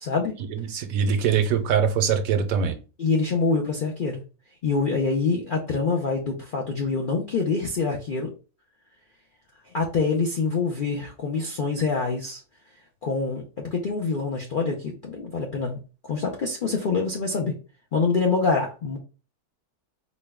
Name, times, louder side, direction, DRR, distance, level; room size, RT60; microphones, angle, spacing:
voice 1, 0.0-0.3 3.0-4.2 4.6-8.3 9.7-12.4 13.0-15.8 16.0-17.5 17.9-19.0, left 4 dB, 60° left, 0 dB, 0.5 m, -25 dB
voice 2, 0.5-2.8, right 7 dB, 70° right, 7 dB, 1.0 m, -23 dB
4.2 x 2.2 x 3.4 m, 0.34 s
omnidirectional pair, 1.6 m